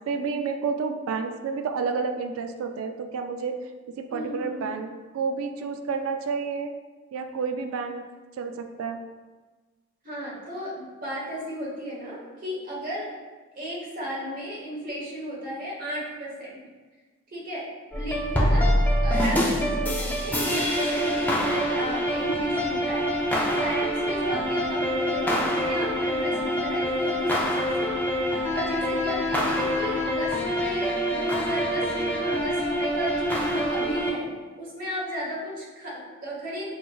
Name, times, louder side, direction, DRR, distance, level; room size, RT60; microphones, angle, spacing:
voice 1, 0.1-3.5 4.0-6.7 7.1-8.0 8.4-9.0, right 5 dB, 80° right, 7 dB, 0.3 m, -30 dB
voice 2, 4.1-4.7 10.0-13.1 13.5-16.6 17.3-17.7 17.9-18.7 19.0-27.9 28.3-36.7, equal, 40° right, -6 dB, 1.1 m, -34 dB
sound 1, 17.9-34.1, equal, 10° left, 0.3 m, -25 dB
4.6 x 2.9 x 2.3 m, 1.3 s
head